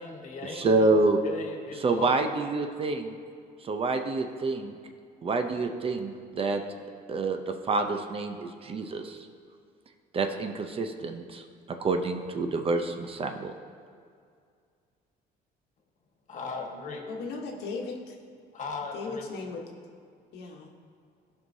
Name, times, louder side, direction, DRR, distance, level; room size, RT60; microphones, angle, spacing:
voice 1, 0.0-2.3 16.3-17.1 18.5-19.2, left 3 dB, 45° left, 2 dB, 1.4 m, -37 dB
voice 2, 0.5-1.2 1.8-3.2 3.6-4.7 5.2-6.6 7.1-7.4 7.7-9.2 10.1-11.4 11.8-13.5, right 3 dB, 35° right, 6 dB, 0.6 m, -27 dB
voice 3, 17.1-18.2 18.9-19.6 20.3-20.7, left 4 dB, 80° left, 1 dB, 1.2 m, -37 dB
14.5 x 5.5 x 2.7 m, 2.2 s
cardioid pair, 110°, 17 cm